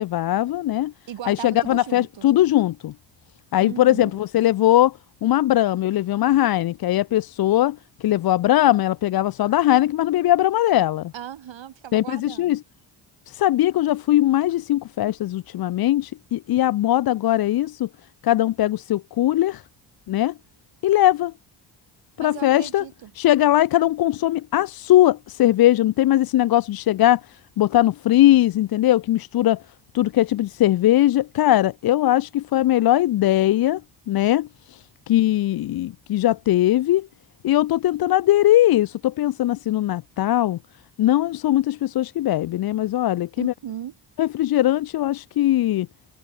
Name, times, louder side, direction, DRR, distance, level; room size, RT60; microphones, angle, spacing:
voice 1, 0.0-0.9 1.3-2.9 3.5-11.1 11.9-12.6 13.3-17.9 18.2-19.6 20.1-20.3 20.8-21.3 22.2-22.8 23.1-29.6 29.9-33.8 34.1-37.1 37.4-40.6 41.0-43.5 44.2-45.9, left 14 dB, 55° left, 0.5 m, -20 dB
voice 2, 1.1-2.3 3.6-4.1 11.1-12.6 22.2-23.1 43.4-43.9, right 10 dB, 80° right, 6.3 m, -37 dB
cardioid pair, 70°, 45 cm